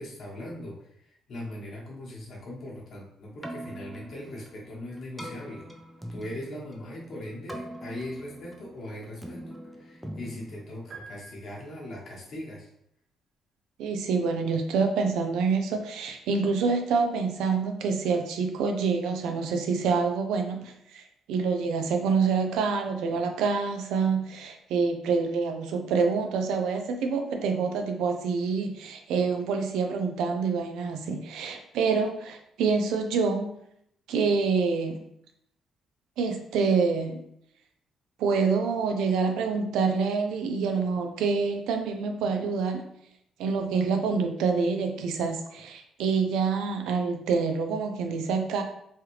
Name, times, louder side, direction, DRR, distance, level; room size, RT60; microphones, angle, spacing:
voice 1, 0.0-5.7 6.1-9.4 9.7-12.7, left 1 dB, 60° left, -3 dB, 1.2 m, -40 dB
Keyboard (musical), 3.3-11.4, right 1 dB, 10° right, 0.5 m, -43 dB
sound 1, 10.9-12.2, right 4 dB, 50° right, 0.7 m, -48 dB
voice 2, 13.8-33.5 34.1-35.0 36.2-37.2 38.2-42.8 43.4-48.6, right 5 dB, 90° right, 5 dB, 0.4 m, -27 dB
3.2 x 2.3 x 3.0 m, 0.73 s
cardioid pair, 90°, 0 cm